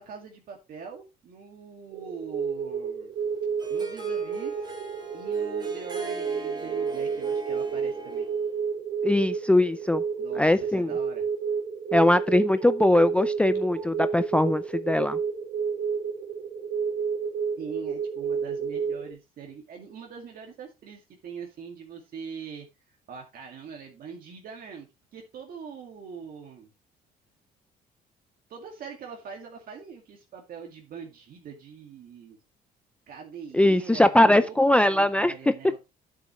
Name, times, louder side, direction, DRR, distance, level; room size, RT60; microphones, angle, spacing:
voice 1, 0.0-3.1 3.7-4.7 5.1-8.3 10.2-11.2 17.6-24.9 25.1-26.7 28.5-32.4 33.1-35.8, right 6 dB, 60° right, 2.2 m, -43 dB
sound 1, 1.9-19.1, right 6 dB, 75° right, 3.7 m, -30 dB
Harp, 3.2-8.5, right 2 dB, 25° right, 3.2 m, -41 dB
voice 2, 9.0-10.0 10.4-10.9 11.9-15.2 33.5-35.3, left 1 dB, 5° left, 0.5 m, -21 dB
10.0 x 7.4 x 3.1 m
cardioid pair, 110°, 17 cm